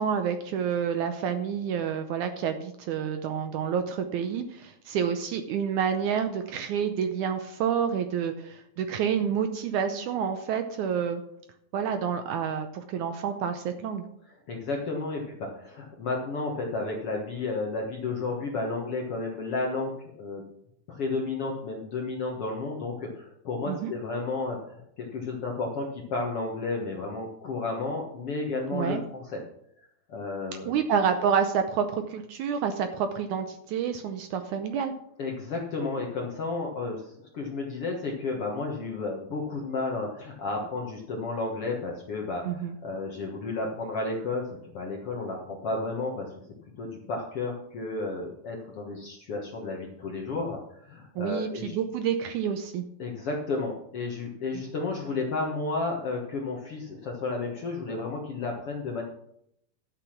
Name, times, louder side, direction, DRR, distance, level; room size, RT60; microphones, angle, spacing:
voice 1, 0.0-11.2 11.7-14.1 23.7-23.9 28.7-29.0 30.7-34.9 42.4-42.8 51.2-52.8, right 7 dB, 80° right, 8 dB, 1.8 m, -28 dB
voice 2, 14.5-20.4 20.9-29.4 30.1-30.7 35.2-46.3 46.8-51.8 53.0-59.0, left 3 dB, 55° left, 0 dB, 1.7 m, -32 dB
12.0 x 7.0 x 5.9 m, 0.73 s
omnidirectional pair, 4.3 m